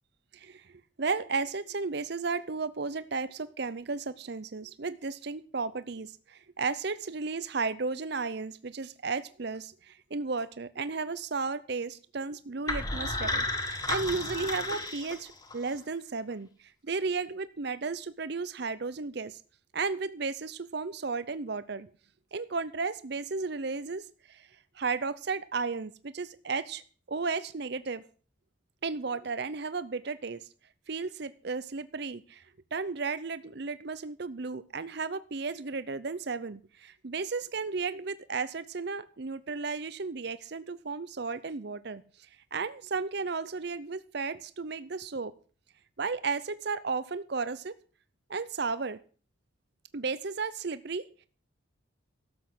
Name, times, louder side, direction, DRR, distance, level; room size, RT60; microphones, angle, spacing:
voice 1, 0.3-19.4 19.7-21.9 22.3-24.5 24.7-26.8 27.1-28.0 28.8-30.5 30.9-32.4 32.7-45.3 46.0-47.7 48.3-49.0 49.9-51.1, right 4 dB, 55° right, 14 dB, 0.6 m, -34 dB
sound 1, 12.7-15.7, left 2 dB, 20° left, 1.7 m, -33 dB
13.0 x 7.9 x 7.8 m, 0.41 s
head